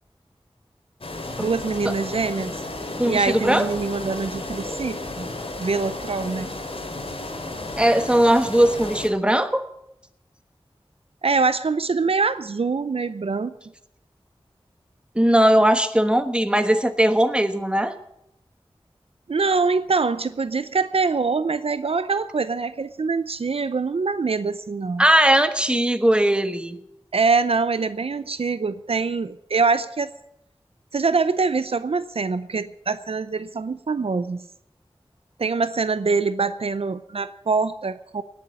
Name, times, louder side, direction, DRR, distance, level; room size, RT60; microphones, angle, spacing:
sound 1, 1.0-9.1, left 2 dB, 70° left, 2.7 m, -33 dB
voice 1, 1.4-2.6 3.0-5.3 5.6-6.5 11.2-13.5 19.3-25.0 27.1-30.1 30.9-34.5 35.4-38.2, right 4 dB, 75° right, 13 dB, 0.6 m, -24 dB
voice 2, 3.0-3.7 7.8-9.7 15.1-17.9 25.0-26.8, right 1 dB, 10° right, 9 dB, 1.2 m, -19 dB
18.0 x 7.1 x 8.6 m, 0.81 s
wide cardioid pair, 70°, 10 cm